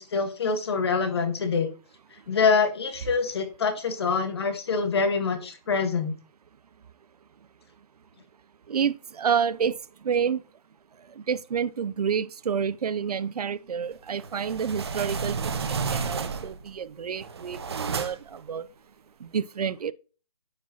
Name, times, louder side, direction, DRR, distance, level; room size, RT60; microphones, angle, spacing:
voice 1, 0.0-1.7 2.3-6.1, left 5 dB, 40° left, 1.4 m, -25 dB
voice 2, 8.7-9.7 10.0-10.4 11.2-15.4 15.7-18.7 19.2-19.9, right 7 dB, 75° right, 0.5 m, -29 dB
sound 1, 14.2-16.7 17.1-18.4, right 5 dB, 40° right, 0.8 m, -31 dB
9.6 x 4.7 x 2.9 m
hypercardioid pair, 175°, 20 cm